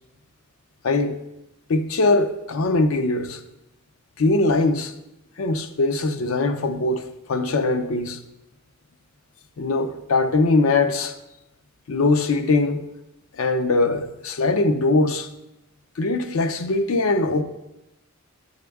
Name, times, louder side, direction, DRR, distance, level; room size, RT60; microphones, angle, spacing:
voice 1, 0.8-1.2 1.7-3.4 4.2-4.9 5.4-8.2 9.6-11.2 11.9-12.9 13.4-15.3 16.0-17.4, left 2 dB, 70° left, 0.5 m, -21 dB
6.7 x 6.5 x 3.5 m
head